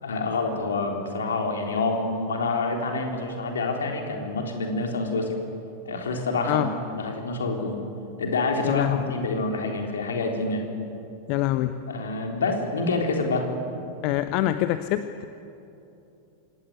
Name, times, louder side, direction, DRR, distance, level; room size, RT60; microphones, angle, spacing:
voice 1, 0.0-5.3 5.9-6.6 6.9-7.8 8.2-10.7 11.9-13.5, left 3 dB, 65° left, 2 dB, 3.8 m, -27 dB
voice 2, 8.6-9.1 11.3-11.8 14.0-15.2, left 14 dB, 45° left, 11 dB, 0.8 m, -25 dB
26.0 x 17.0 x 9.7 m, 2.8 s
figure-of-eight pair, 90°, 0 cm